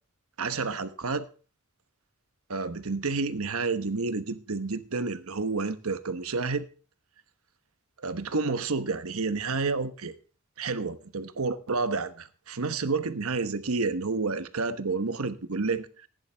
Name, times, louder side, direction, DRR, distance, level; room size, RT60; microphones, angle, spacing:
voice 1, 0.4-1.3 2.5-6.7 8.0-10.1 10.6-16.1, right 4 dB, 90° right, 1.1 m, -30 dB
15.5 x 10.5 x 3.5 m
head